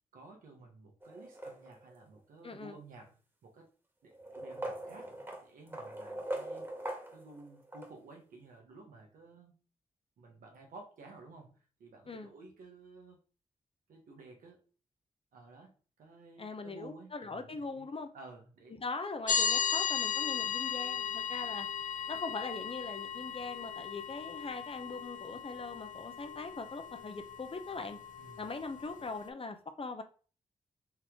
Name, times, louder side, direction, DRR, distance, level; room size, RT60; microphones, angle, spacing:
voice 1, 0.1-3.1 3.4-3.7 4.0-5.1 5.4-6.7 7.1-9.6 10.2-13.2 13.9-14.6 15.3-17.9 18.1-18.8 28.2-28.5, right 3 dB, 90° right, 1.3 m, -54 dB
sound 1, 1.0-2.0 3.0-3.1 4.1-7.9, right 1 dB, 15° right, 1.7 m, -42 dB
voice 2, 2.4-2.8 12.1-12.3 16.4-18.1 18.7-21.7 22.1-28.0 28.4-30.0, left 3 dB, 45° left, 0.9 m, -41 dB
sound 2, 19.3-29.3, left 7 dB, 70° left, 0.6 m, -36 dB
4.6 x 3.0 x 3.6 m
supercardioid pair, 40°, 14 cm